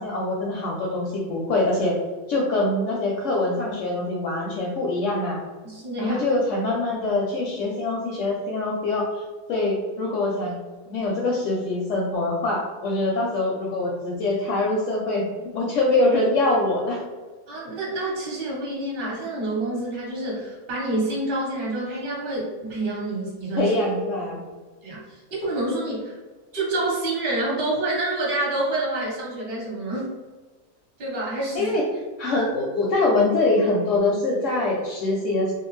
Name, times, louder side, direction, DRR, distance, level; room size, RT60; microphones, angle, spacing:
voice 1, 0.0-2.0 2.3-5.4 6.0-9.2 9.5-10.6 10.9-17.0 23.6-24.4 31.5-31.8 32.2-35.5, left 2 dB, 70° left, -3 dB, 0.8 m, -24 dB
voice 2, 5.6-6.2 17.5-23.7 24.8-26.2 26.5-30.1 31.0-31.7, right 2 dB, 40° right, -4 dB, 0.9 m, -27 dB
2.5 x 2.3 x 3.0 m, 1.3 s
omnidirectional pair, 1.6 m